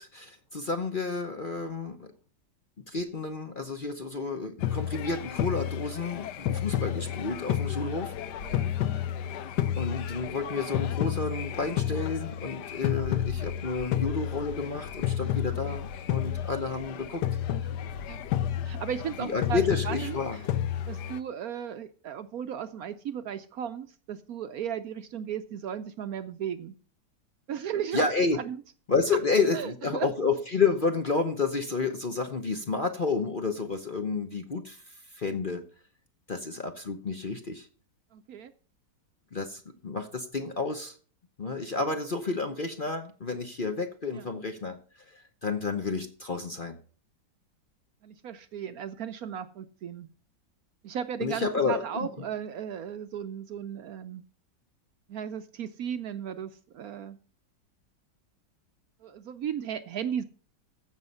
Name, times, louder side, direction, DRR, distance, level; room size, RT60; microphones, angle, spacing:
voice 1, 0.0-2.1 2.9-8.1 8.7-9.0 9.8-17.2 19.2-20.5 27.9-28.4 28.9-35.6 36.3-37.7 39.3-40.9 41.4-44.8 45.1-46.8 51.2-52.1, left 4 dB, 40° left, 6 dB, 0.9 m, -30 dB
sound 1, 4.6-21.2, left 11 dB, 70° left, 1.3 m, -31 dB
voice 2, 18.6-20.2 20.9-26.7 27.5-28.6 29.5-30.1 38.1-38.5 44.1-44.3 48.0-50.1 50.8-54.2 55.1-57.2 59.0-60.2, right 8 dB, 65° right, 11 dB, 1.0 m, -36 dB
15.0 x 6.3 x 5.5 m, 0.41 s
omnidirectional pair, 1.9 m